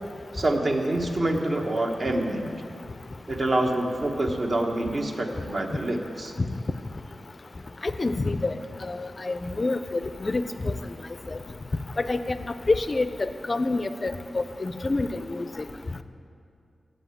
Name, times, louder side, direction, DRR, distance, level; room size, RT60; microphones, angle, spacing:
voice 1, 0.3-2.5 3.3-6.3, right 1 dB, 45° right, 2 dB, 1.0 m, -26 dB
voice 2, 7.8-8.5 8.8-10.7 12.0-12.4 12.7-15.5, left 2 dB, 35° left, 11 dB, 0.4 m, -27 dB
7.8 x 7.5 x 8.2 m, 2.4 s
wide cardioid pair, 95°, 0 cm